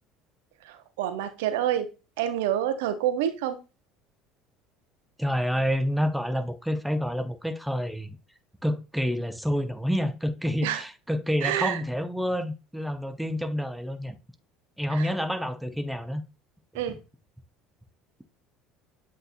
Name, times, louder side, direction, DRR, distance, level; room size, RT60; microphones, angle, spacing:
voice 1, 0.6-1.9 2.2-3.6 10.6-10.8 11.4-11.8 14.9-15.1 16.7-17.0, right 11 dB, 70° right, 0.5 m, -27 dB
voice 2, 5.2-8.2 8.6-14.2 14.8-16.2, equal, 5° right, 0.6 m, -28 dB
7.8 x 2.7 x 2.5 m
figure-of-eight pair, 65°, 0 cm